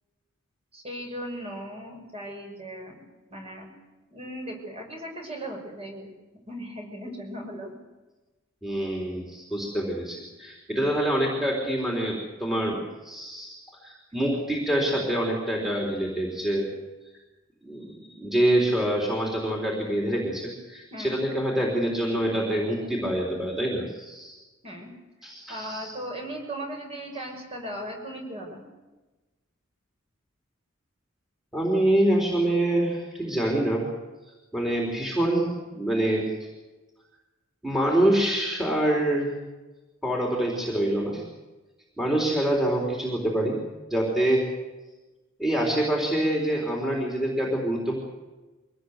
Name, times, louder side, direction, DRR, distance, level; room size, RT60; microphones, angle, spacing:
voice 1, 0.7-3.0 3.3-3.7 4.1-6.1 6.5-7.7 20.9-21.2 24.6-24.9 25.5-28.6, right 1 dB, 30° right, 1 dB, 5.9 m, -37 dB
voice 2, 8.6-13.6 13.8-16.7 17.6-24.4 25.2-25.9 31.5-33.9 34.5-36.3 37.6-39.3 40.0-41.2 42.0-43.6 43.9-44.5 45.4-48.0, right 1 dB, ahead, -1 dB, 3.8 m, -26 dB
23.5 x 18.0 x 8.2 m, 1.1 s
head